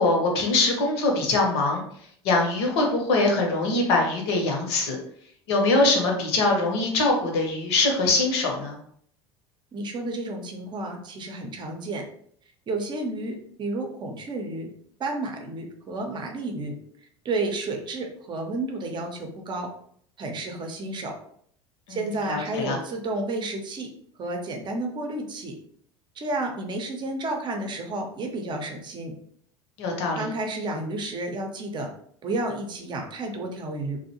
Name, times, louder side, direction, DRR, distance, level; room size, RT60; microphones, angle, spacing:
voice 1, 0.0-1.8 2.2-5.0 5.5-8.8 21.9-22.0 22.3-22.8 29.8-30.2, left 2 dB, 65° left, 1 dB, 0.8 m, -23 dB
voice 2, 9.7-12.0 12.7-14.7 15.0-16.8 17.2-19.7 20.2-21.2 21.9-23.9 24.2-25.6 26.2-29.1 30.1-31.9 32.2-34.0, right 2 dB, 30° right, 3 dB, 0.6 m, -31 dB
2.5 x 2.1 x 2.8 m, 0.63 s
figure-of-eight pair, 70°, 14 cm